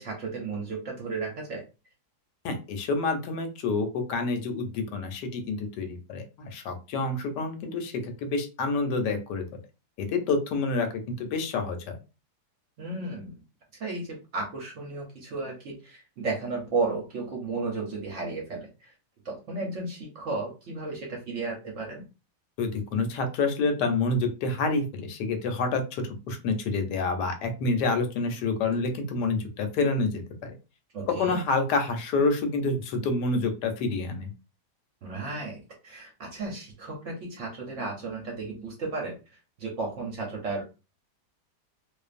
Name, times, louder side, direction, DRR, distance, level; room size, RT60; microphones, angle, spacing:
voice 1, 0.0-1.6 12.8-13.3 13.8-18.9 19.2-22.0 30.9-31.4 35.0-39.1 39.6-40.6, right 3 dB, 60° right, 0 dB, 0.8 m, -33 dB
voice 2, 2.4-9.5 10.0-11.8 22.6-30.5 31.1-34.3, left 3 dB, 85° left, 6 dB, 1.2 m, -28 dB
2.5 x 2.4 x 2.4 m, 0.30 s
omnidirectional pair, 1.8 m